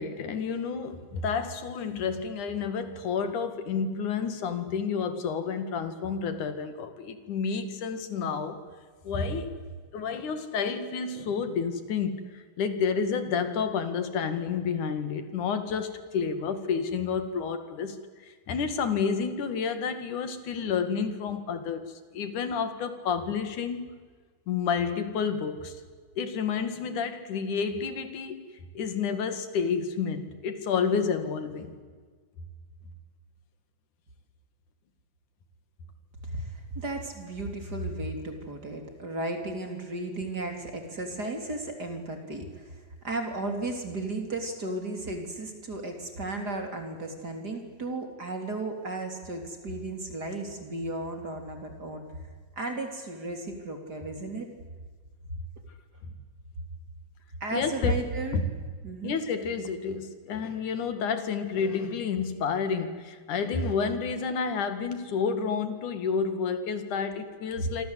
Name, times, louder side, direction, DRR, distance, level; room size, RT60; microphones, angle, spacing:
voice 1, 0.0-8.6 9.1-9.6 9.9-18.0 18.5-24.0 24.5-25.8 26.2-28.4 28.8-31.7 57.5-58.0 58.3-58.4 59.0-67.9, left 6 dB, 85° left, 9 dB, 3.5 m, -30 dB
voice 2, 36.2-42.8 43.0-52.1 52.6-54.5 57.4-58.4 58.8-59.2 64.8-64.9 67.6-67.7, right 2 dB, 30° right, 4 dB, 3.7 m, -34 dB
27.0 x 25.5 x 8.3 m, 1.5 s
omnidirectional pair, 3.5 m